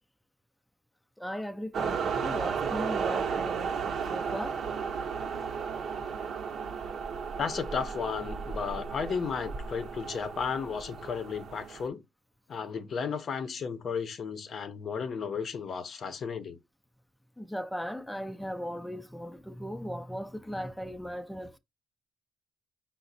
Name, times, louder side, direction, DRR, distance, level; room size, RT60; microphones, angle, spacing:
voice 1, 1.2-4.6 17.4-21.6, equal, 5° left, 0.4 m, -38 dB
sound 1, 1.7-11.9, right 6 dB, 60° right, 0.8 m, -34 dB
voice 2, 7.4-12.0 12.5-16.6, left 6 dB, 55° left, 0.6 m, -34 dB
4.8 x 2.0 x 4.0 m
cardioid pair, 90°, 0 cm